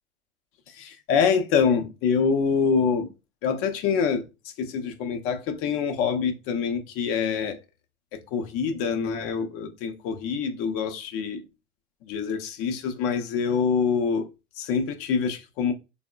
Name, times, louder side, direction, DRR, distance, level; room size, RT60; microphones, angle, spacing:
voice 1, 0.8-3.1 3.4-4.2 4.6-7.6 8.3-11.4 12.1-14.3 14.6-15.7, left 6 dB, 50° left, 0.6 m, -25 dB
3.5 x 2.0 x 2.3 m
hypercardioid pair, 90°, 30 cm